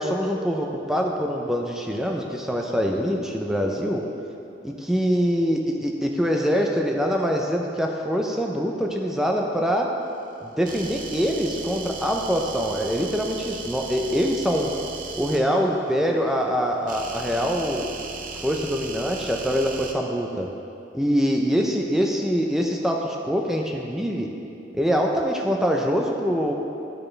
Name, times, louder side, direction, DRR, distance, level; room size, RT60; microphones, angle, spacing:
voice 1, 0.0-4.0 4.6-9.9 10.4-14.7 15.2-17.9 18.4-20.5 20.9-24.3 24.7-26.5, equal, 5° right, 1 dB, 0.5 m, -24 dB
sound 1, 10.7-15.4 16.9-19.9, right 4 dB, 45° right, 0.6 m, -37 dB
12.0 x 4.2 x 3.3 m, 2.7 s
head